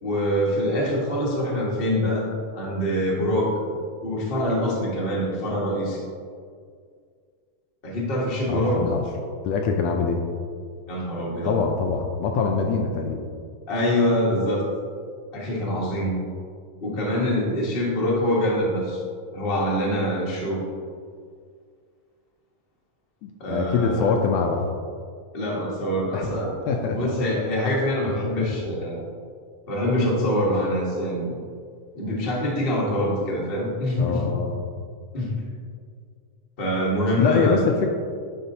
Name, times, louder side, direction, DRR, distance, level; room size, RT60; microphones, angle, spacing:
voice 1, 0.0-6.0 7.8-8.8 10.9-11.6 13.7-14.7 15.3-16.2 16.8-19.0 19.3-20.7 23.4-24.2 25.3-29.0 29.7-31.4 31.9-34.2 35.1-35.4 36.6-37.6, equal, 60° left, -4 dB, 0.5 m, -25 dB
voice 2, 8.5-9.0 9.4-10.2 11.4-13.2 23.2-24.6 26.1-26.3 26.7-27.2 34.0-34.6 37.2-37.9, left 5 dB, 80° left, 2 dB, 1.6 m, -24 dB
11.0 x 4.1 x 2.7 m, 2.1 s
omnidirectional pair, 3.3 m